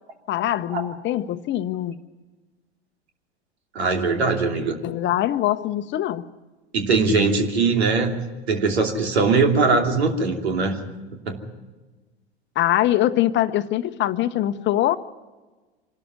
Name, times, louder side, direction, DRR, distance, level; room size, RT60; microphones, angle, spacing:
voice 1, 0.3-2.0 4.8-6.3 12.6-15.0, left 13 dB, 35° left, 0.9 m, -23 dB
voice 2, 3.7-4.8 6.7-8.2 8.5-10.8 11.1-11.4, right 4 dB, 75° right, 2.9 m, -21 dB
26.0 x 13.0 x 9.6 m
figure-of-eight pair, 85°, 32 cm